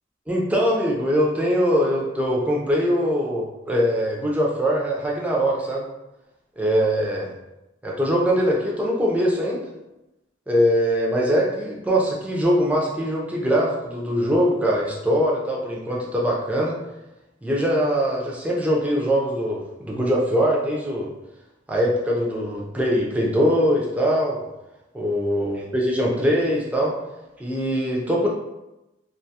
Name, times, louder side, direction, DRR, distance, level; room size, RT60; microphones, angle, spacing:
voice 1, 0.3-5.9 6.6-7.3 7.8-9.6 10.5-16.8 17.4-21.1 21.7-24.4 24.9-26.9 27.4-28.3, equal, 10° right, -3 dB, 0.4 m, -22 dB
2.4 x 2.2 x 2.7 m, 0.96 s
head